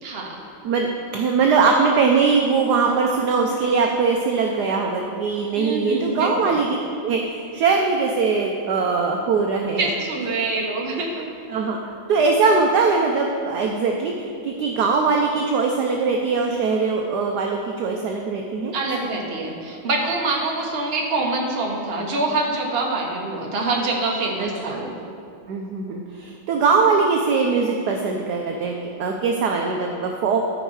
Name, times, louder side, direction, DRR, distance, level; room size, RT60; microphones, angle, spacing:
voice 1, 0.0-0.4 5.5-6.5 9.8-11.2 18.7-24.9, right 2 dB, 35° right, -1 dB, 1.1 m, -25 dB
voice 2, 1.1-6.8 7.0-9.9 11.5-11.8 12.1-18.7 24.4-24.8 25.5-28.7 29.0-30.5, right 4 dB, 70° right, 1 dB, 1.0 m, -21 dB
12.5 x 5.1 x 4.7 m, 2.4 s
omnidirectional pair, 2.2 m